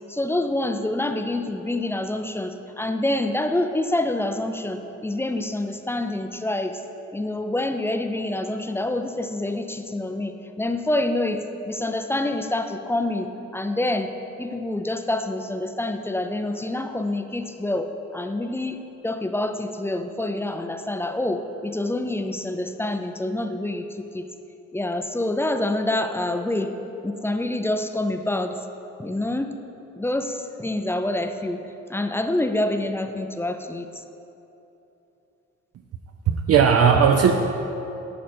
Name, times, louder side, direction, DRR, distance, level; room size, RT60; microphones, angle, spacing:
voice 1, 0.1-6.8 7.1-11.4 11.6-14.1 14.4-23.8 24.1-24.3 24.7-26.7 27.0-28.5 29.0-29.5 30.0-31.6 31.9-34.0, left 1 dB, 10° left, 6 dB, 0.4 m, -27 dB
voice 2, 36.3-37.3, right 7 dB, 55° right, 4 dB, 0.5 m, -17 dB
11.0 x 4.9 x 4.3 m, 3.0 s
cardioid pair, 90°, 30 cm